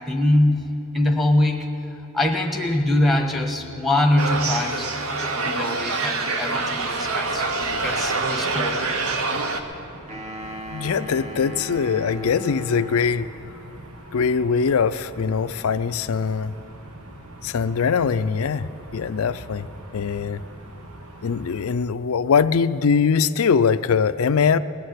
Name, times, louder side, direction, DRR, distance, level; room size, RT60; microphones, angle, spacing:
voice 1, 0.1-4.9 5.4-7.6 7.8-9.0, left 1 dB, ahead, 3 dB, 1.2 m, -23 dB
sound 1, 4.2-9.6, right 3 dB, 70° right, 1.0 m, -25 dB
sound 2, 6.5-21.8, right 1 dB, 85° right, 1.4 m, -43 dB
sound 3, 10.1-13.4, right 1 dB, 35° right, 1.5 m, -37 dB
voice 2, 10.7-13.3 14.1-16.5 17.4-18.6 18.9-19.7 19.9-20.4 21.2-24.6, left 6 dB, 75° left, 14 dB, 0.4 m, -22 dB
19.5 x 6.6 x 9.5 m, 2.9 s
head